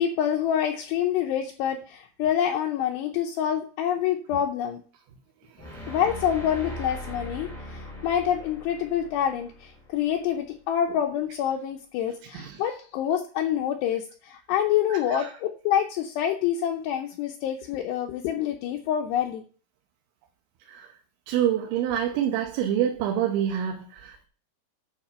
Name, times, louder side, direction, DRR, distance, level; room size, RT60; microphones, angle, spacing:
voice 1, 0.0-4.8 5.9-19.4, left 9 dB, 75° left, 2.6 m, -27 dB
sound 1, 5.6-10.7, equal, 5° left, 1.5 m, -40 dB
voice 2, 21.3-24.3, right 10 dB, 80° right, 3.3 m, -27 dB
10.5 x 4.9 x 6.7 m
omnidirectional pair, 5.5 m